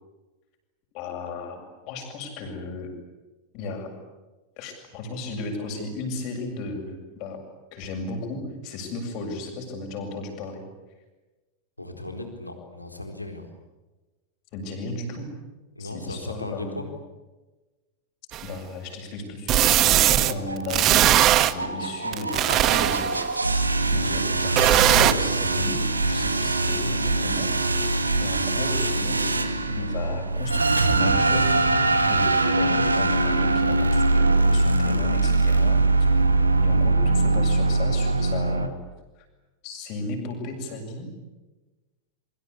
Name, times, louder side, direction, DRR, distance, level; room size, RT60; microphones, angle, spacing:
voice 1, 0.9-1.6 1.9-2.9 3.5-3.9 4.6-7.4 7.7-10.6 14.5-15.3 15.8-16.9 18.4-21.1 21.5-23.6 23.9-27.5 28.2-29.4 29.7-31.6 32.0-35.8 36.6-38.8 39.6-41.1, left 3 dB, 45° left, 4 dB, 7.5 m, -34 dB
voice 2, 11.8-13.5 15.8-16.9 21.7-21.9, left 2 dB, 85° left, 5 dB, 4.2 m, -36 dB
sound 1, 18.3-18.4 19.5-20.3 20.7-21.5 22.1-23.3 24.6-25.1, right 13 dB, 35° right, 1.1 m, -19 dB
sound 2, 19.8-38.7, right 2 dB, 80° right, 1.9 m, -23 dB
28.0 x 24.5 x 8.5 m, 1.2 s
figure-of-eight pair, 90°, 0 cm